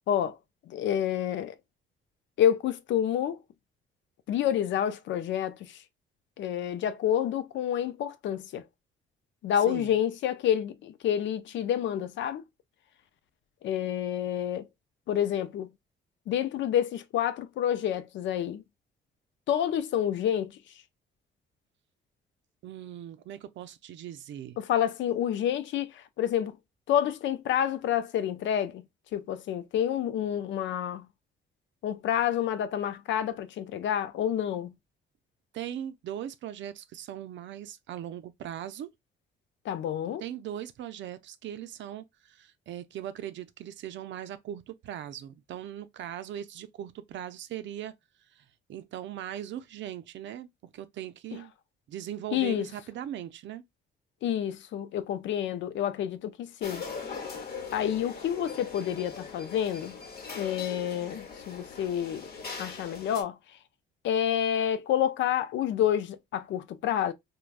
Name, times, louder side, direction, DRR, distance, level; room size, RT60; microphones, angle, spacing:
voice 1, 0.1-0.4 0.7-1.6 2.4-3.4 4.3-5.8 6.4-8.6 9.4-12.4 13.6-14.7 15.1-15.7 16.3-18.6 19.5-20.6 24.6-26.6 26.9-28.9 29.1-31.1 31.8-34.7 39.6-40.2 52.3-52.7 54.2-56.9 57.7-60.0 60.3-62.3 62.6-63.4 64.0-67.1, left 10 dB, 70° left, 0.4 m, -28 dB
voice 2, 22.6-24.6 35.5-38.9 40.2-47.9 48.3-48.4 48.7-51.5 51.9-53.6, right 11 dB, 70° right, 0.5 m, -39 dB
sound 1, 56.6-63.2, left 5 dB, 50° left, 1.0 m, -41 dB
3.2 x 2.2 x 2.4 m
cardioid pair, 90°, 20 cm